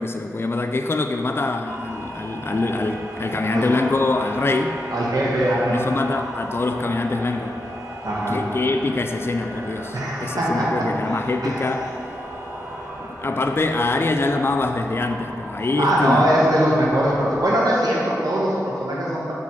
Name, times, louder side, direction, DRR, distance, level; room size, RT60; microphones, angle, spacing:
voice 1, 0.0-4.9 5.7-7.6 8.3-11.9 13.0-16.3, left 2 dB, 35° left, 5 dB, 0.3 m, -24 dB
sound 1, 1.6-17.5, equal, 45° right, 1.4 m, -35 dB
voice 2, 4.9-5.9 8.0-8.4 9.9-11.6 15.8-19.3, equal, 75° right, -6 dB, 1.3 m, -21 dB
4.8 x 4.0 x 5.4 m, 2.5 s
cardioid pair, 40°, 7 cm